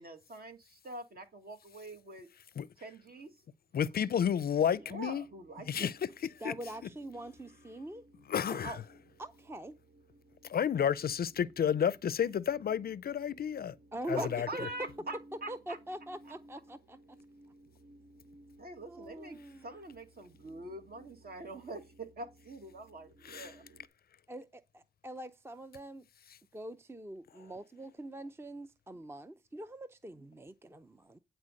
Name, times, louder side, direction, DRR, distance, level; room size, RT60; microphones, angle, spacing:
voice 1, 0.0-2.3 2.8-3.4 4.9-5.9 8.5-8.8 14.2-15.8 18.6-23.6, right 2 dB, 55° right, 2.1 m, -44 dB
voice 2, 3.7-5.2 5.7-6.5 8.3-8.8 10.5-13.8 14.1-14.5 23.2-23.5, left 8 dB, 55° left, 0.5 m, -31 dB
sound 1, 4.4-23.9, right 1 dB, 70° right, 1.5 m, -60 dB
voice 3, 6.4-8.0 8.5-8.6 9.2-9.7 13.9-14.7 15.5-17.2 18.9-19.7 24.3-26.1 26.5-31.2, right 1 dB, 15° right, 0.5 m, -44 dB
9.7 x 4.4 x 6.4 m
cardioid pair, 80°, 19 cm